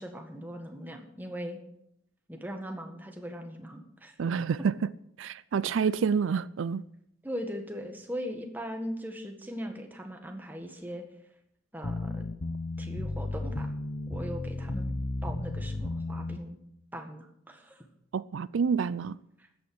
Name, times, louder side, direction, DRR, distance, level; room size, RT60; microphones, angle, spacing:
voice 1, 0.0-1.6 2.3-4.2 5.8-5.9 7.2-11.0 11.7-12.2 12.8-13.7 14.1-14.9 15.2-16.6 16.9-17.9 19.4-19.5, equal, 10° right, 1.7 m, -39 dB
voice 2, 4.2-4.9 5.2-6.8 18.1-19.2, right 6 dB, 80° right, 0.4 m, -28 dB
sound 1, 11.8-16.4, left 2 dB, 45° left, 0.8 m, -34 dB
13.5 x 8.7 x 7.9 m
head